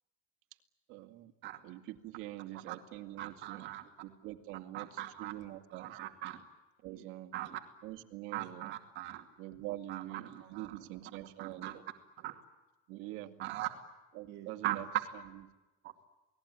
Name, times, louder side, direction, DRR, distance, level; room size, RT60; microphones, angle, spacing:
voice 1, 0.9-1.3 1.6-3.7 4.0-6.0 6.8-7.4 7.8-8.8 9.4-11.9 12.9-13.3 14.1-15.5, right 16 dB, 80° right, 7 dB, 2.3 m, -45 dB
voice 2, 3.2-3.8 4.7-5.3 5.7-6.4 7.0-7.1 7.3-7.6 8.3-9.2 9.9-10.7 11.4-11.7 12.2-12.4 13.4-13.7 14.3-14.8 15.8-15.9, right 14 dB, 60° right, 5 dB, 2.4 m, -40 dB
28.5 x 20.0 x 10.0 m, 1.1 s
cardioid pair, 155°, 20 cm